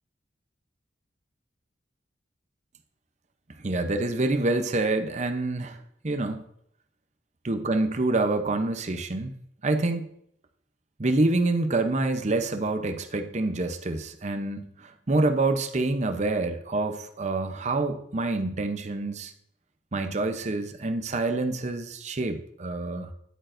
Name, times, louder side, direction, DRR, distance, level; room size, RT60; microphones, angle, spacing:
voice 1, 3.6-5.8 6.0-6.4 7.4-9.3 9.6-10.1 11.0-19.3 19.9-23.1, right 2 dB, 40° right, 7 dB, 0.7 m, -27 dB
10.0 x 8.5 x 2.6 m, 0.70 s
head